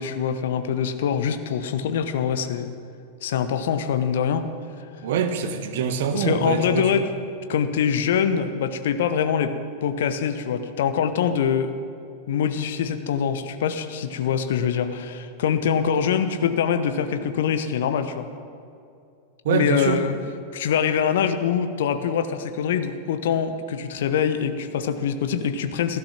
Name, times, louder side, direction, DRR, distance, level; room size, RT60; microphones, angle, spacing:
voice 1, 0.0-2.7 3.2-4.5 4.8-4.9 6.1-7.1 7.5-9.5 9.8-11.7 12.3-18.3 19.5-20.1 20.5-26.0, left 7 dB, 55° left, 9 dB, 1.0 m, -24 dB
voice 2, 5.0-7.0 19.4-20.0, right 7 dB, 55° right, 8 dB, 1.3 m, -24 dB
16.0 x 12.5 x 6.0 m, 2.5 s
figure-of-eight pair, 90°, 0 cm